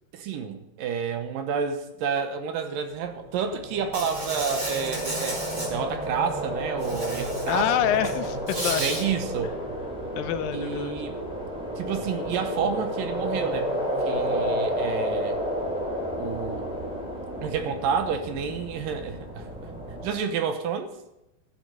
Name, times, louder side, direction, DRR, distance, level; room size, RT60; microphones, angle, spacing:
voice 1, 0.1-8.0 8.8-9.6 10.5-11.2 11.8-15.4 16.2-16.7 17.4-19.7 20.0-20.9, right 6 dB, 75° right, 7 dB, 2.6 m, -30 dB
sound 1, 3.2-20.1, equal, ahead, 2.9 m, -31 dB
Insect, 3.9-5.7 6.8-7.6 7.9-9.0, right 1 dB, 15° right, 2.1 m, -33 dB
voice 2, 7.5-8.8 10.2-11.0, left 10 dB, 80° left, 11 dB, 2.4 m, -26 dB
13.0 x 7.0 x 6.3 m, 0.87 s
omnidirectional pair, 4.1 m